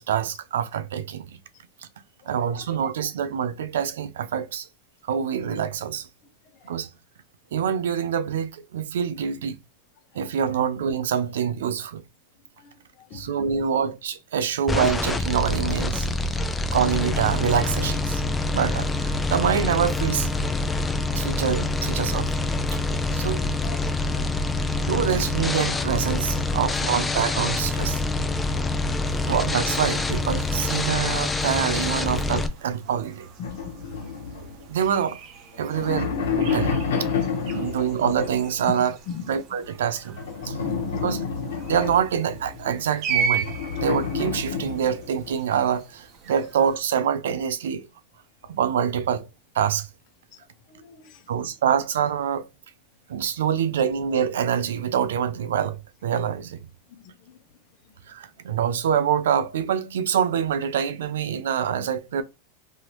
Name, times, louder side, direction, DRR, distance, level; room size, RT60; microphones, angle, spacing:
voice 1, 0.0-1.4 2.3-4.7 5.1-6.1 6.6-6.9 7.5-9.6 10.1-12.0 13.1-16.1 16.7-18.2 18.5-20.3 21.1-22.3 22.7-22.8 23.1-23.5 24.8-28.0 29.2-33.3 34.7-35.2 35.6-36.8 37.5-39.0 39.3-40.2 40.5-40.6 40.9-41.3 41.7-43.5 43.8-47.9 48.5-49.3 49.5-49.9 51.3-52.5 53.1-56.6 58.1-62.2, right 8 dB, 85° right, 0.4 m, -25 dB
sound 1, 14.7-32.5, left 3 dB, 10° left, 0.4 m, -26 dB
voice 2, 23.6-24.9 28.0-28.7 33.4-33.7 35.9-36.1 39.1-39.2 50.8-51.2, left 7 dB, 50° left, 0.9 m, -40 dB
sound 2, 29.0-46.8, right 6 dB, 50° right, 0.8 m, -37 dB
sound 3, 33.4-35.0 35.5-38.6 40.2-42.7 43.4-45.3, left 5 dB, 85° left, 1.1 m, -29 dB
3.0 x 2.7 x 2.9 m
supercardioid pair, 125°, 0 cm